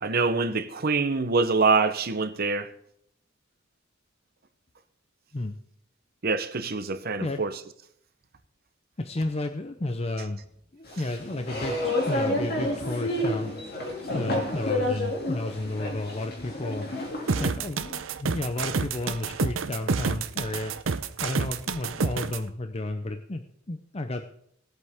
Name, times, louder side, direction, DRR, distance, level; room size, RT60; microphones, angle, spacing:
voice 1, 0.0-2.7 6.2-7.6, right 4 dB, 50° right, 0.9 m, -25 dB
voice 2, 9.0-10.4 10.7-13.5 14.1-16.9 17.4-20.7 21.2-24.2, left 2 dB, 30° left, 0.7 m, -32 dB
sound 1, 10.9-17.5, left 1 dB, 55° left, 2.7 m, -30 dB
sound 2, 17.3-22.4, right 4 dB, 80° right, 0.7 m, -28 dB
19.0 x 7.9 x 3.6 m
head